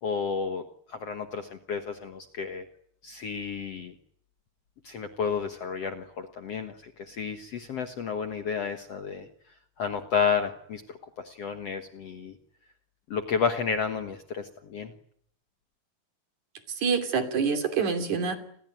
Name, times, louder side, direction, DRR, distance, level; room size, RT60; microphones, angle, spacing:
voice 1, 0.0-2.7 3.0-3.9 4.8-9.3 9.8-12.4 13.1-14.9, left 6 dB, 55° left, 7 dB, 2.0 m, -31 dB
voice 2, 16.7-18.4, right 5 dB, 55° right, 7 dB, 4.2 m, -26 dB
29.5 x 22.0 x 9.2 m, 0.68 s
omnidirectional pair, 4.3 m